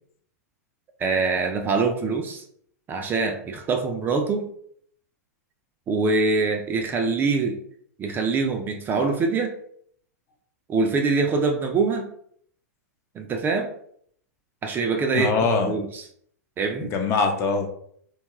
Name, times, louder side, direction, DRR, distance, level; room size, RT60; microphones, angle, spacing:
voice 1, 1.0-2.5 2.9-4.5 5.9-7.6 8.0-9.5 10.7-12.1 13.2-13.7 14.6-15.3 15.6-16.0 16.6-16.9, right 4 dB, 20° right, 4 dB, 0.4 m, -24 dB
voice 2, 15.1-15.8 16.9-17.7, left 4 dB, 30° left, 3 dB, 0.6 m, -22 dB
2.9 x 2.2 x 3.0 m, 0.64 s
figure-of-eight pair, 100°, 9 cm